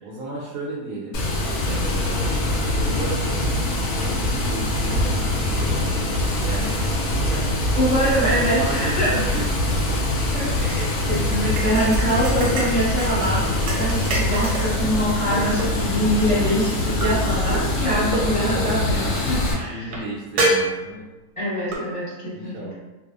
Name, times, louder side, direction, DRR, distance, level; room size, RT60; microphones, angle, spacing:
voice 1, 0.0-1.2 1.6-2.2 2.9-3.7 4.0-6.9 7.3-7.8 8.5-10.1 19.6-21.1 22.3-22.7, right 2 dB, 70° right, -5 dB, 0.9 m, -34 dB
Water, 1.1-19.5, left 1 dB, 65° left, 0.7 m, -23 dB
sound 1, 4.0-4.1 4.5-7.6 7.9-8.5 8.9-10.6 11.6-14.8 15.3-16.0 17.0-17.6 18.1-18.3 18.6-18.7 19.2-19.3 19.9-20.0 20.4-21.2 21.7-21.8, right 1 dB, 85° right, 1.1 m, -28 dB
voice 2, 7.7-9.4 10.3-19.9 21.4-22.7, equal, 25° left, -11 dB, 0.9 m, -24 dB
2.5 x 2.3 x 2.3 m, 1.1 s
omnidirectional pair, 1.6 m